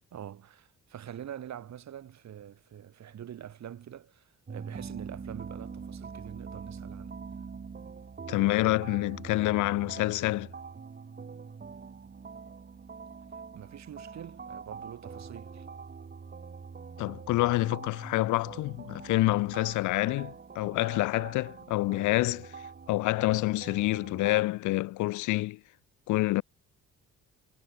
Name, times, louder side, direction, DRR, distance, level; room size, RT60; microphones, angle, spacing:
voice 1, 0.1-7.2 13.5-15.7, right 10 dB, 65° right, 3.9 m, -45 dB
sound 1, 4.5-24.4, right 5 dB, 35° right, 2.5 m, -44 dB
voice 2, 8.3-10.5 17.0-22.5 22.9-25.6 26.1-26.4, left 19 dB, 80° left, 0.5 m, -27 dB
cardioid pair, 90°, 30 cm